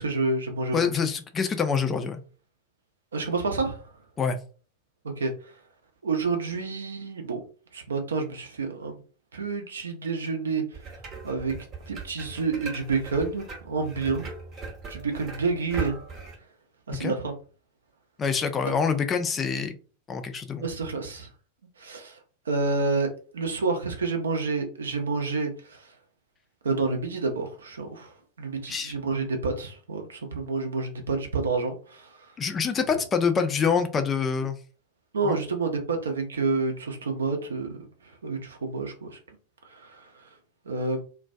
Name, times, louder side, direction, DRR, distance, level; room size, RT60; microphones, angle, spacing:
voice 1, 0.0-0.9 3.1-3.8 5.0-5.3 6.0-7.4 7.7-9.0 9.3-10.6 11.2-11.5 11.9-14.3 14.9-16.0 16.9-17.3 20.5-21.3 21.8-22.2 22.5-25.9 26.6-28.1 28.4-32.1 35.1-37.8 38.2-39.2 39.7-40.1 40.7-41.0, right 3 dB, 70° right, 0.5 m, -29 dB
voice 2, 0.7-2.2 4.2-4.4 16.9-17.1 18.2-19.7 20.1-20.7 28.7-28.9 32.4-34.6 35.2-35.4, left 6 dB, 20° left, 0.3 m, -26 dB
sound 1, 10.7-16.3, right 4 dB, 30° right, 0.8 m, -39 dB
2.3 x 2.1 x 2.5 m
figure-of-eight pair, 90°, 0 cm